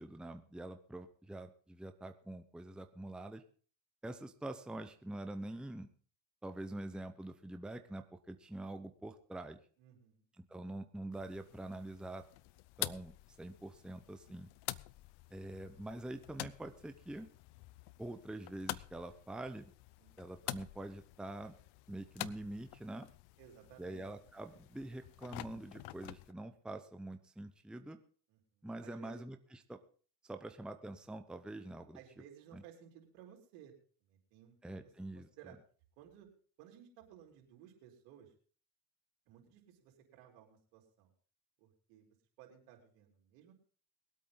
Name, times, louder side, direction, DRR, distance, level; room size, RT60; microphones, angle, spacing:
voice 1, 0.0-3.4 4.0-5.9 6.4-9.6 10.4-12.2 12.8-14.5 15.3-17.3 18.0-19.7 20.2-21.5 21.9-23.1 23.8-28.0 28.6-29.4 29.7-29.8 30.2-32.0 32.5-32.6 34.6-35.3, right 1 dB, ahead, 7 dB, 0.9 m, -45 dB
voice 2, 9.8-10.2 20.0-20.3 23.4-24.1 28.3-29.2 31.9-33.7 34.0-34.8 35.1-35.6 36.0-36.3 36.6-38.3 39.3-41.1 41.6-42.1 42.4-43.5, right 9 dB, 75° right, 1 dB, 4.4 m, -58 dB
sound 1, 11.1-26.3, left 19 dB, 65° left, 0.7 m, -48 dB
22.0 x 8.5 x 3.9 m, 0.42 s
supercardioid pair, 115°, 44 cm